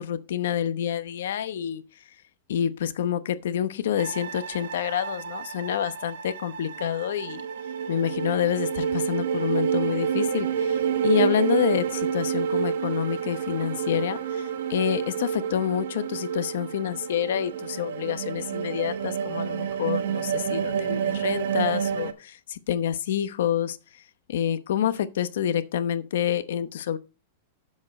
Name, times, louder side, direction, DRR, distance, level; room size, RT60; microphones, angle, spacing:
voice 1, 0.0-1.8 2.5-7.4 7.9-24.0 24.3-27.0, left 9 dB, 75° left, 0.9 m, -28 dB
sound 1, 4.0-22.1, right 8 dB, 75° right, 1.1 m, -29 dB
8.6 x 7.4 x 4.1 m
supercardioid pair, 175°, 0 cm